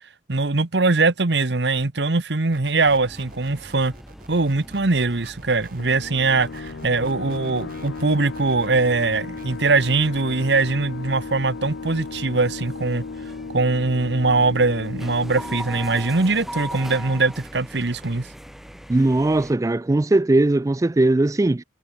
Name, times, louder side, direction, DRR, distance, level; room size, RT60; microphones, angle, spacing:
voice 1, 0.3-3.9 4.3-13.0 13.5-18.3, right 3 dB, 70° right, 1.2 m, -21 dB
sound 1, 2.5-10.7, right 3 dB, 50° right, 4.0 m, -48 dB
sound 2, 2.8-19.5, equal, ahead, 4.2 m, -41 dB
sound 3, 5.8-17.1, left 4 dB, 90° left, 0.6 m, -36 dB
voice 2, 18.9-21.6, right 2 dB, 20° right, 0.3 m, -19 dB
head